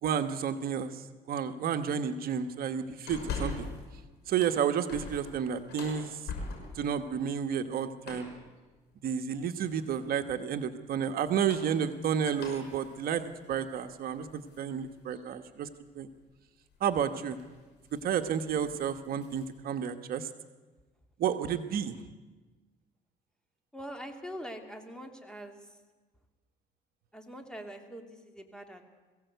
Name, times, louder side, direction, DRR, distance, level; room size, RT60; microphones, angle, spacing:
voice 1, 0.0-3.7 4.3-6.2 6.7-8.3 9.0-15.7 15.9-16.1 16.8-17.4 18.0-20.3 21.2-22.0, right 8 dB, 60° right, 8 dB, 1.2 m, -31 dB
sound 1, 3.1-3.9 4.2-6.9 8.0-8.4 9.5-9.9 11.2-14.7 15.1-15.2 16.7-17.0 17.3-17.6 17.9-18.1 18.4-19.5, left 4 dB, 75° left, 6.0 m, -42 dB
voice 2, 23.7-25.7 27.1-28.9, equal, 5° left, 5 dB, 2.6 m, -43 dB
22.0 x 16.0 x 8.1 m, 1.3 s
cardioid pair, 110°, 17 cm